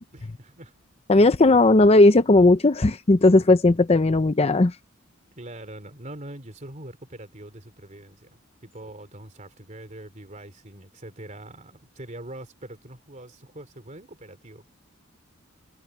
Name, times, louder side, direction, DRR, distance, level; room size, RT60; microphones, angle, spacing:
voice 1, 0.1-0.7 5.3-14.7, right 1 dB, 35° right, 3.3 m, -43 dB
voice 2, 1.1-4.7, left 2 dB, 30° left, 0.6 m, -16 dB
head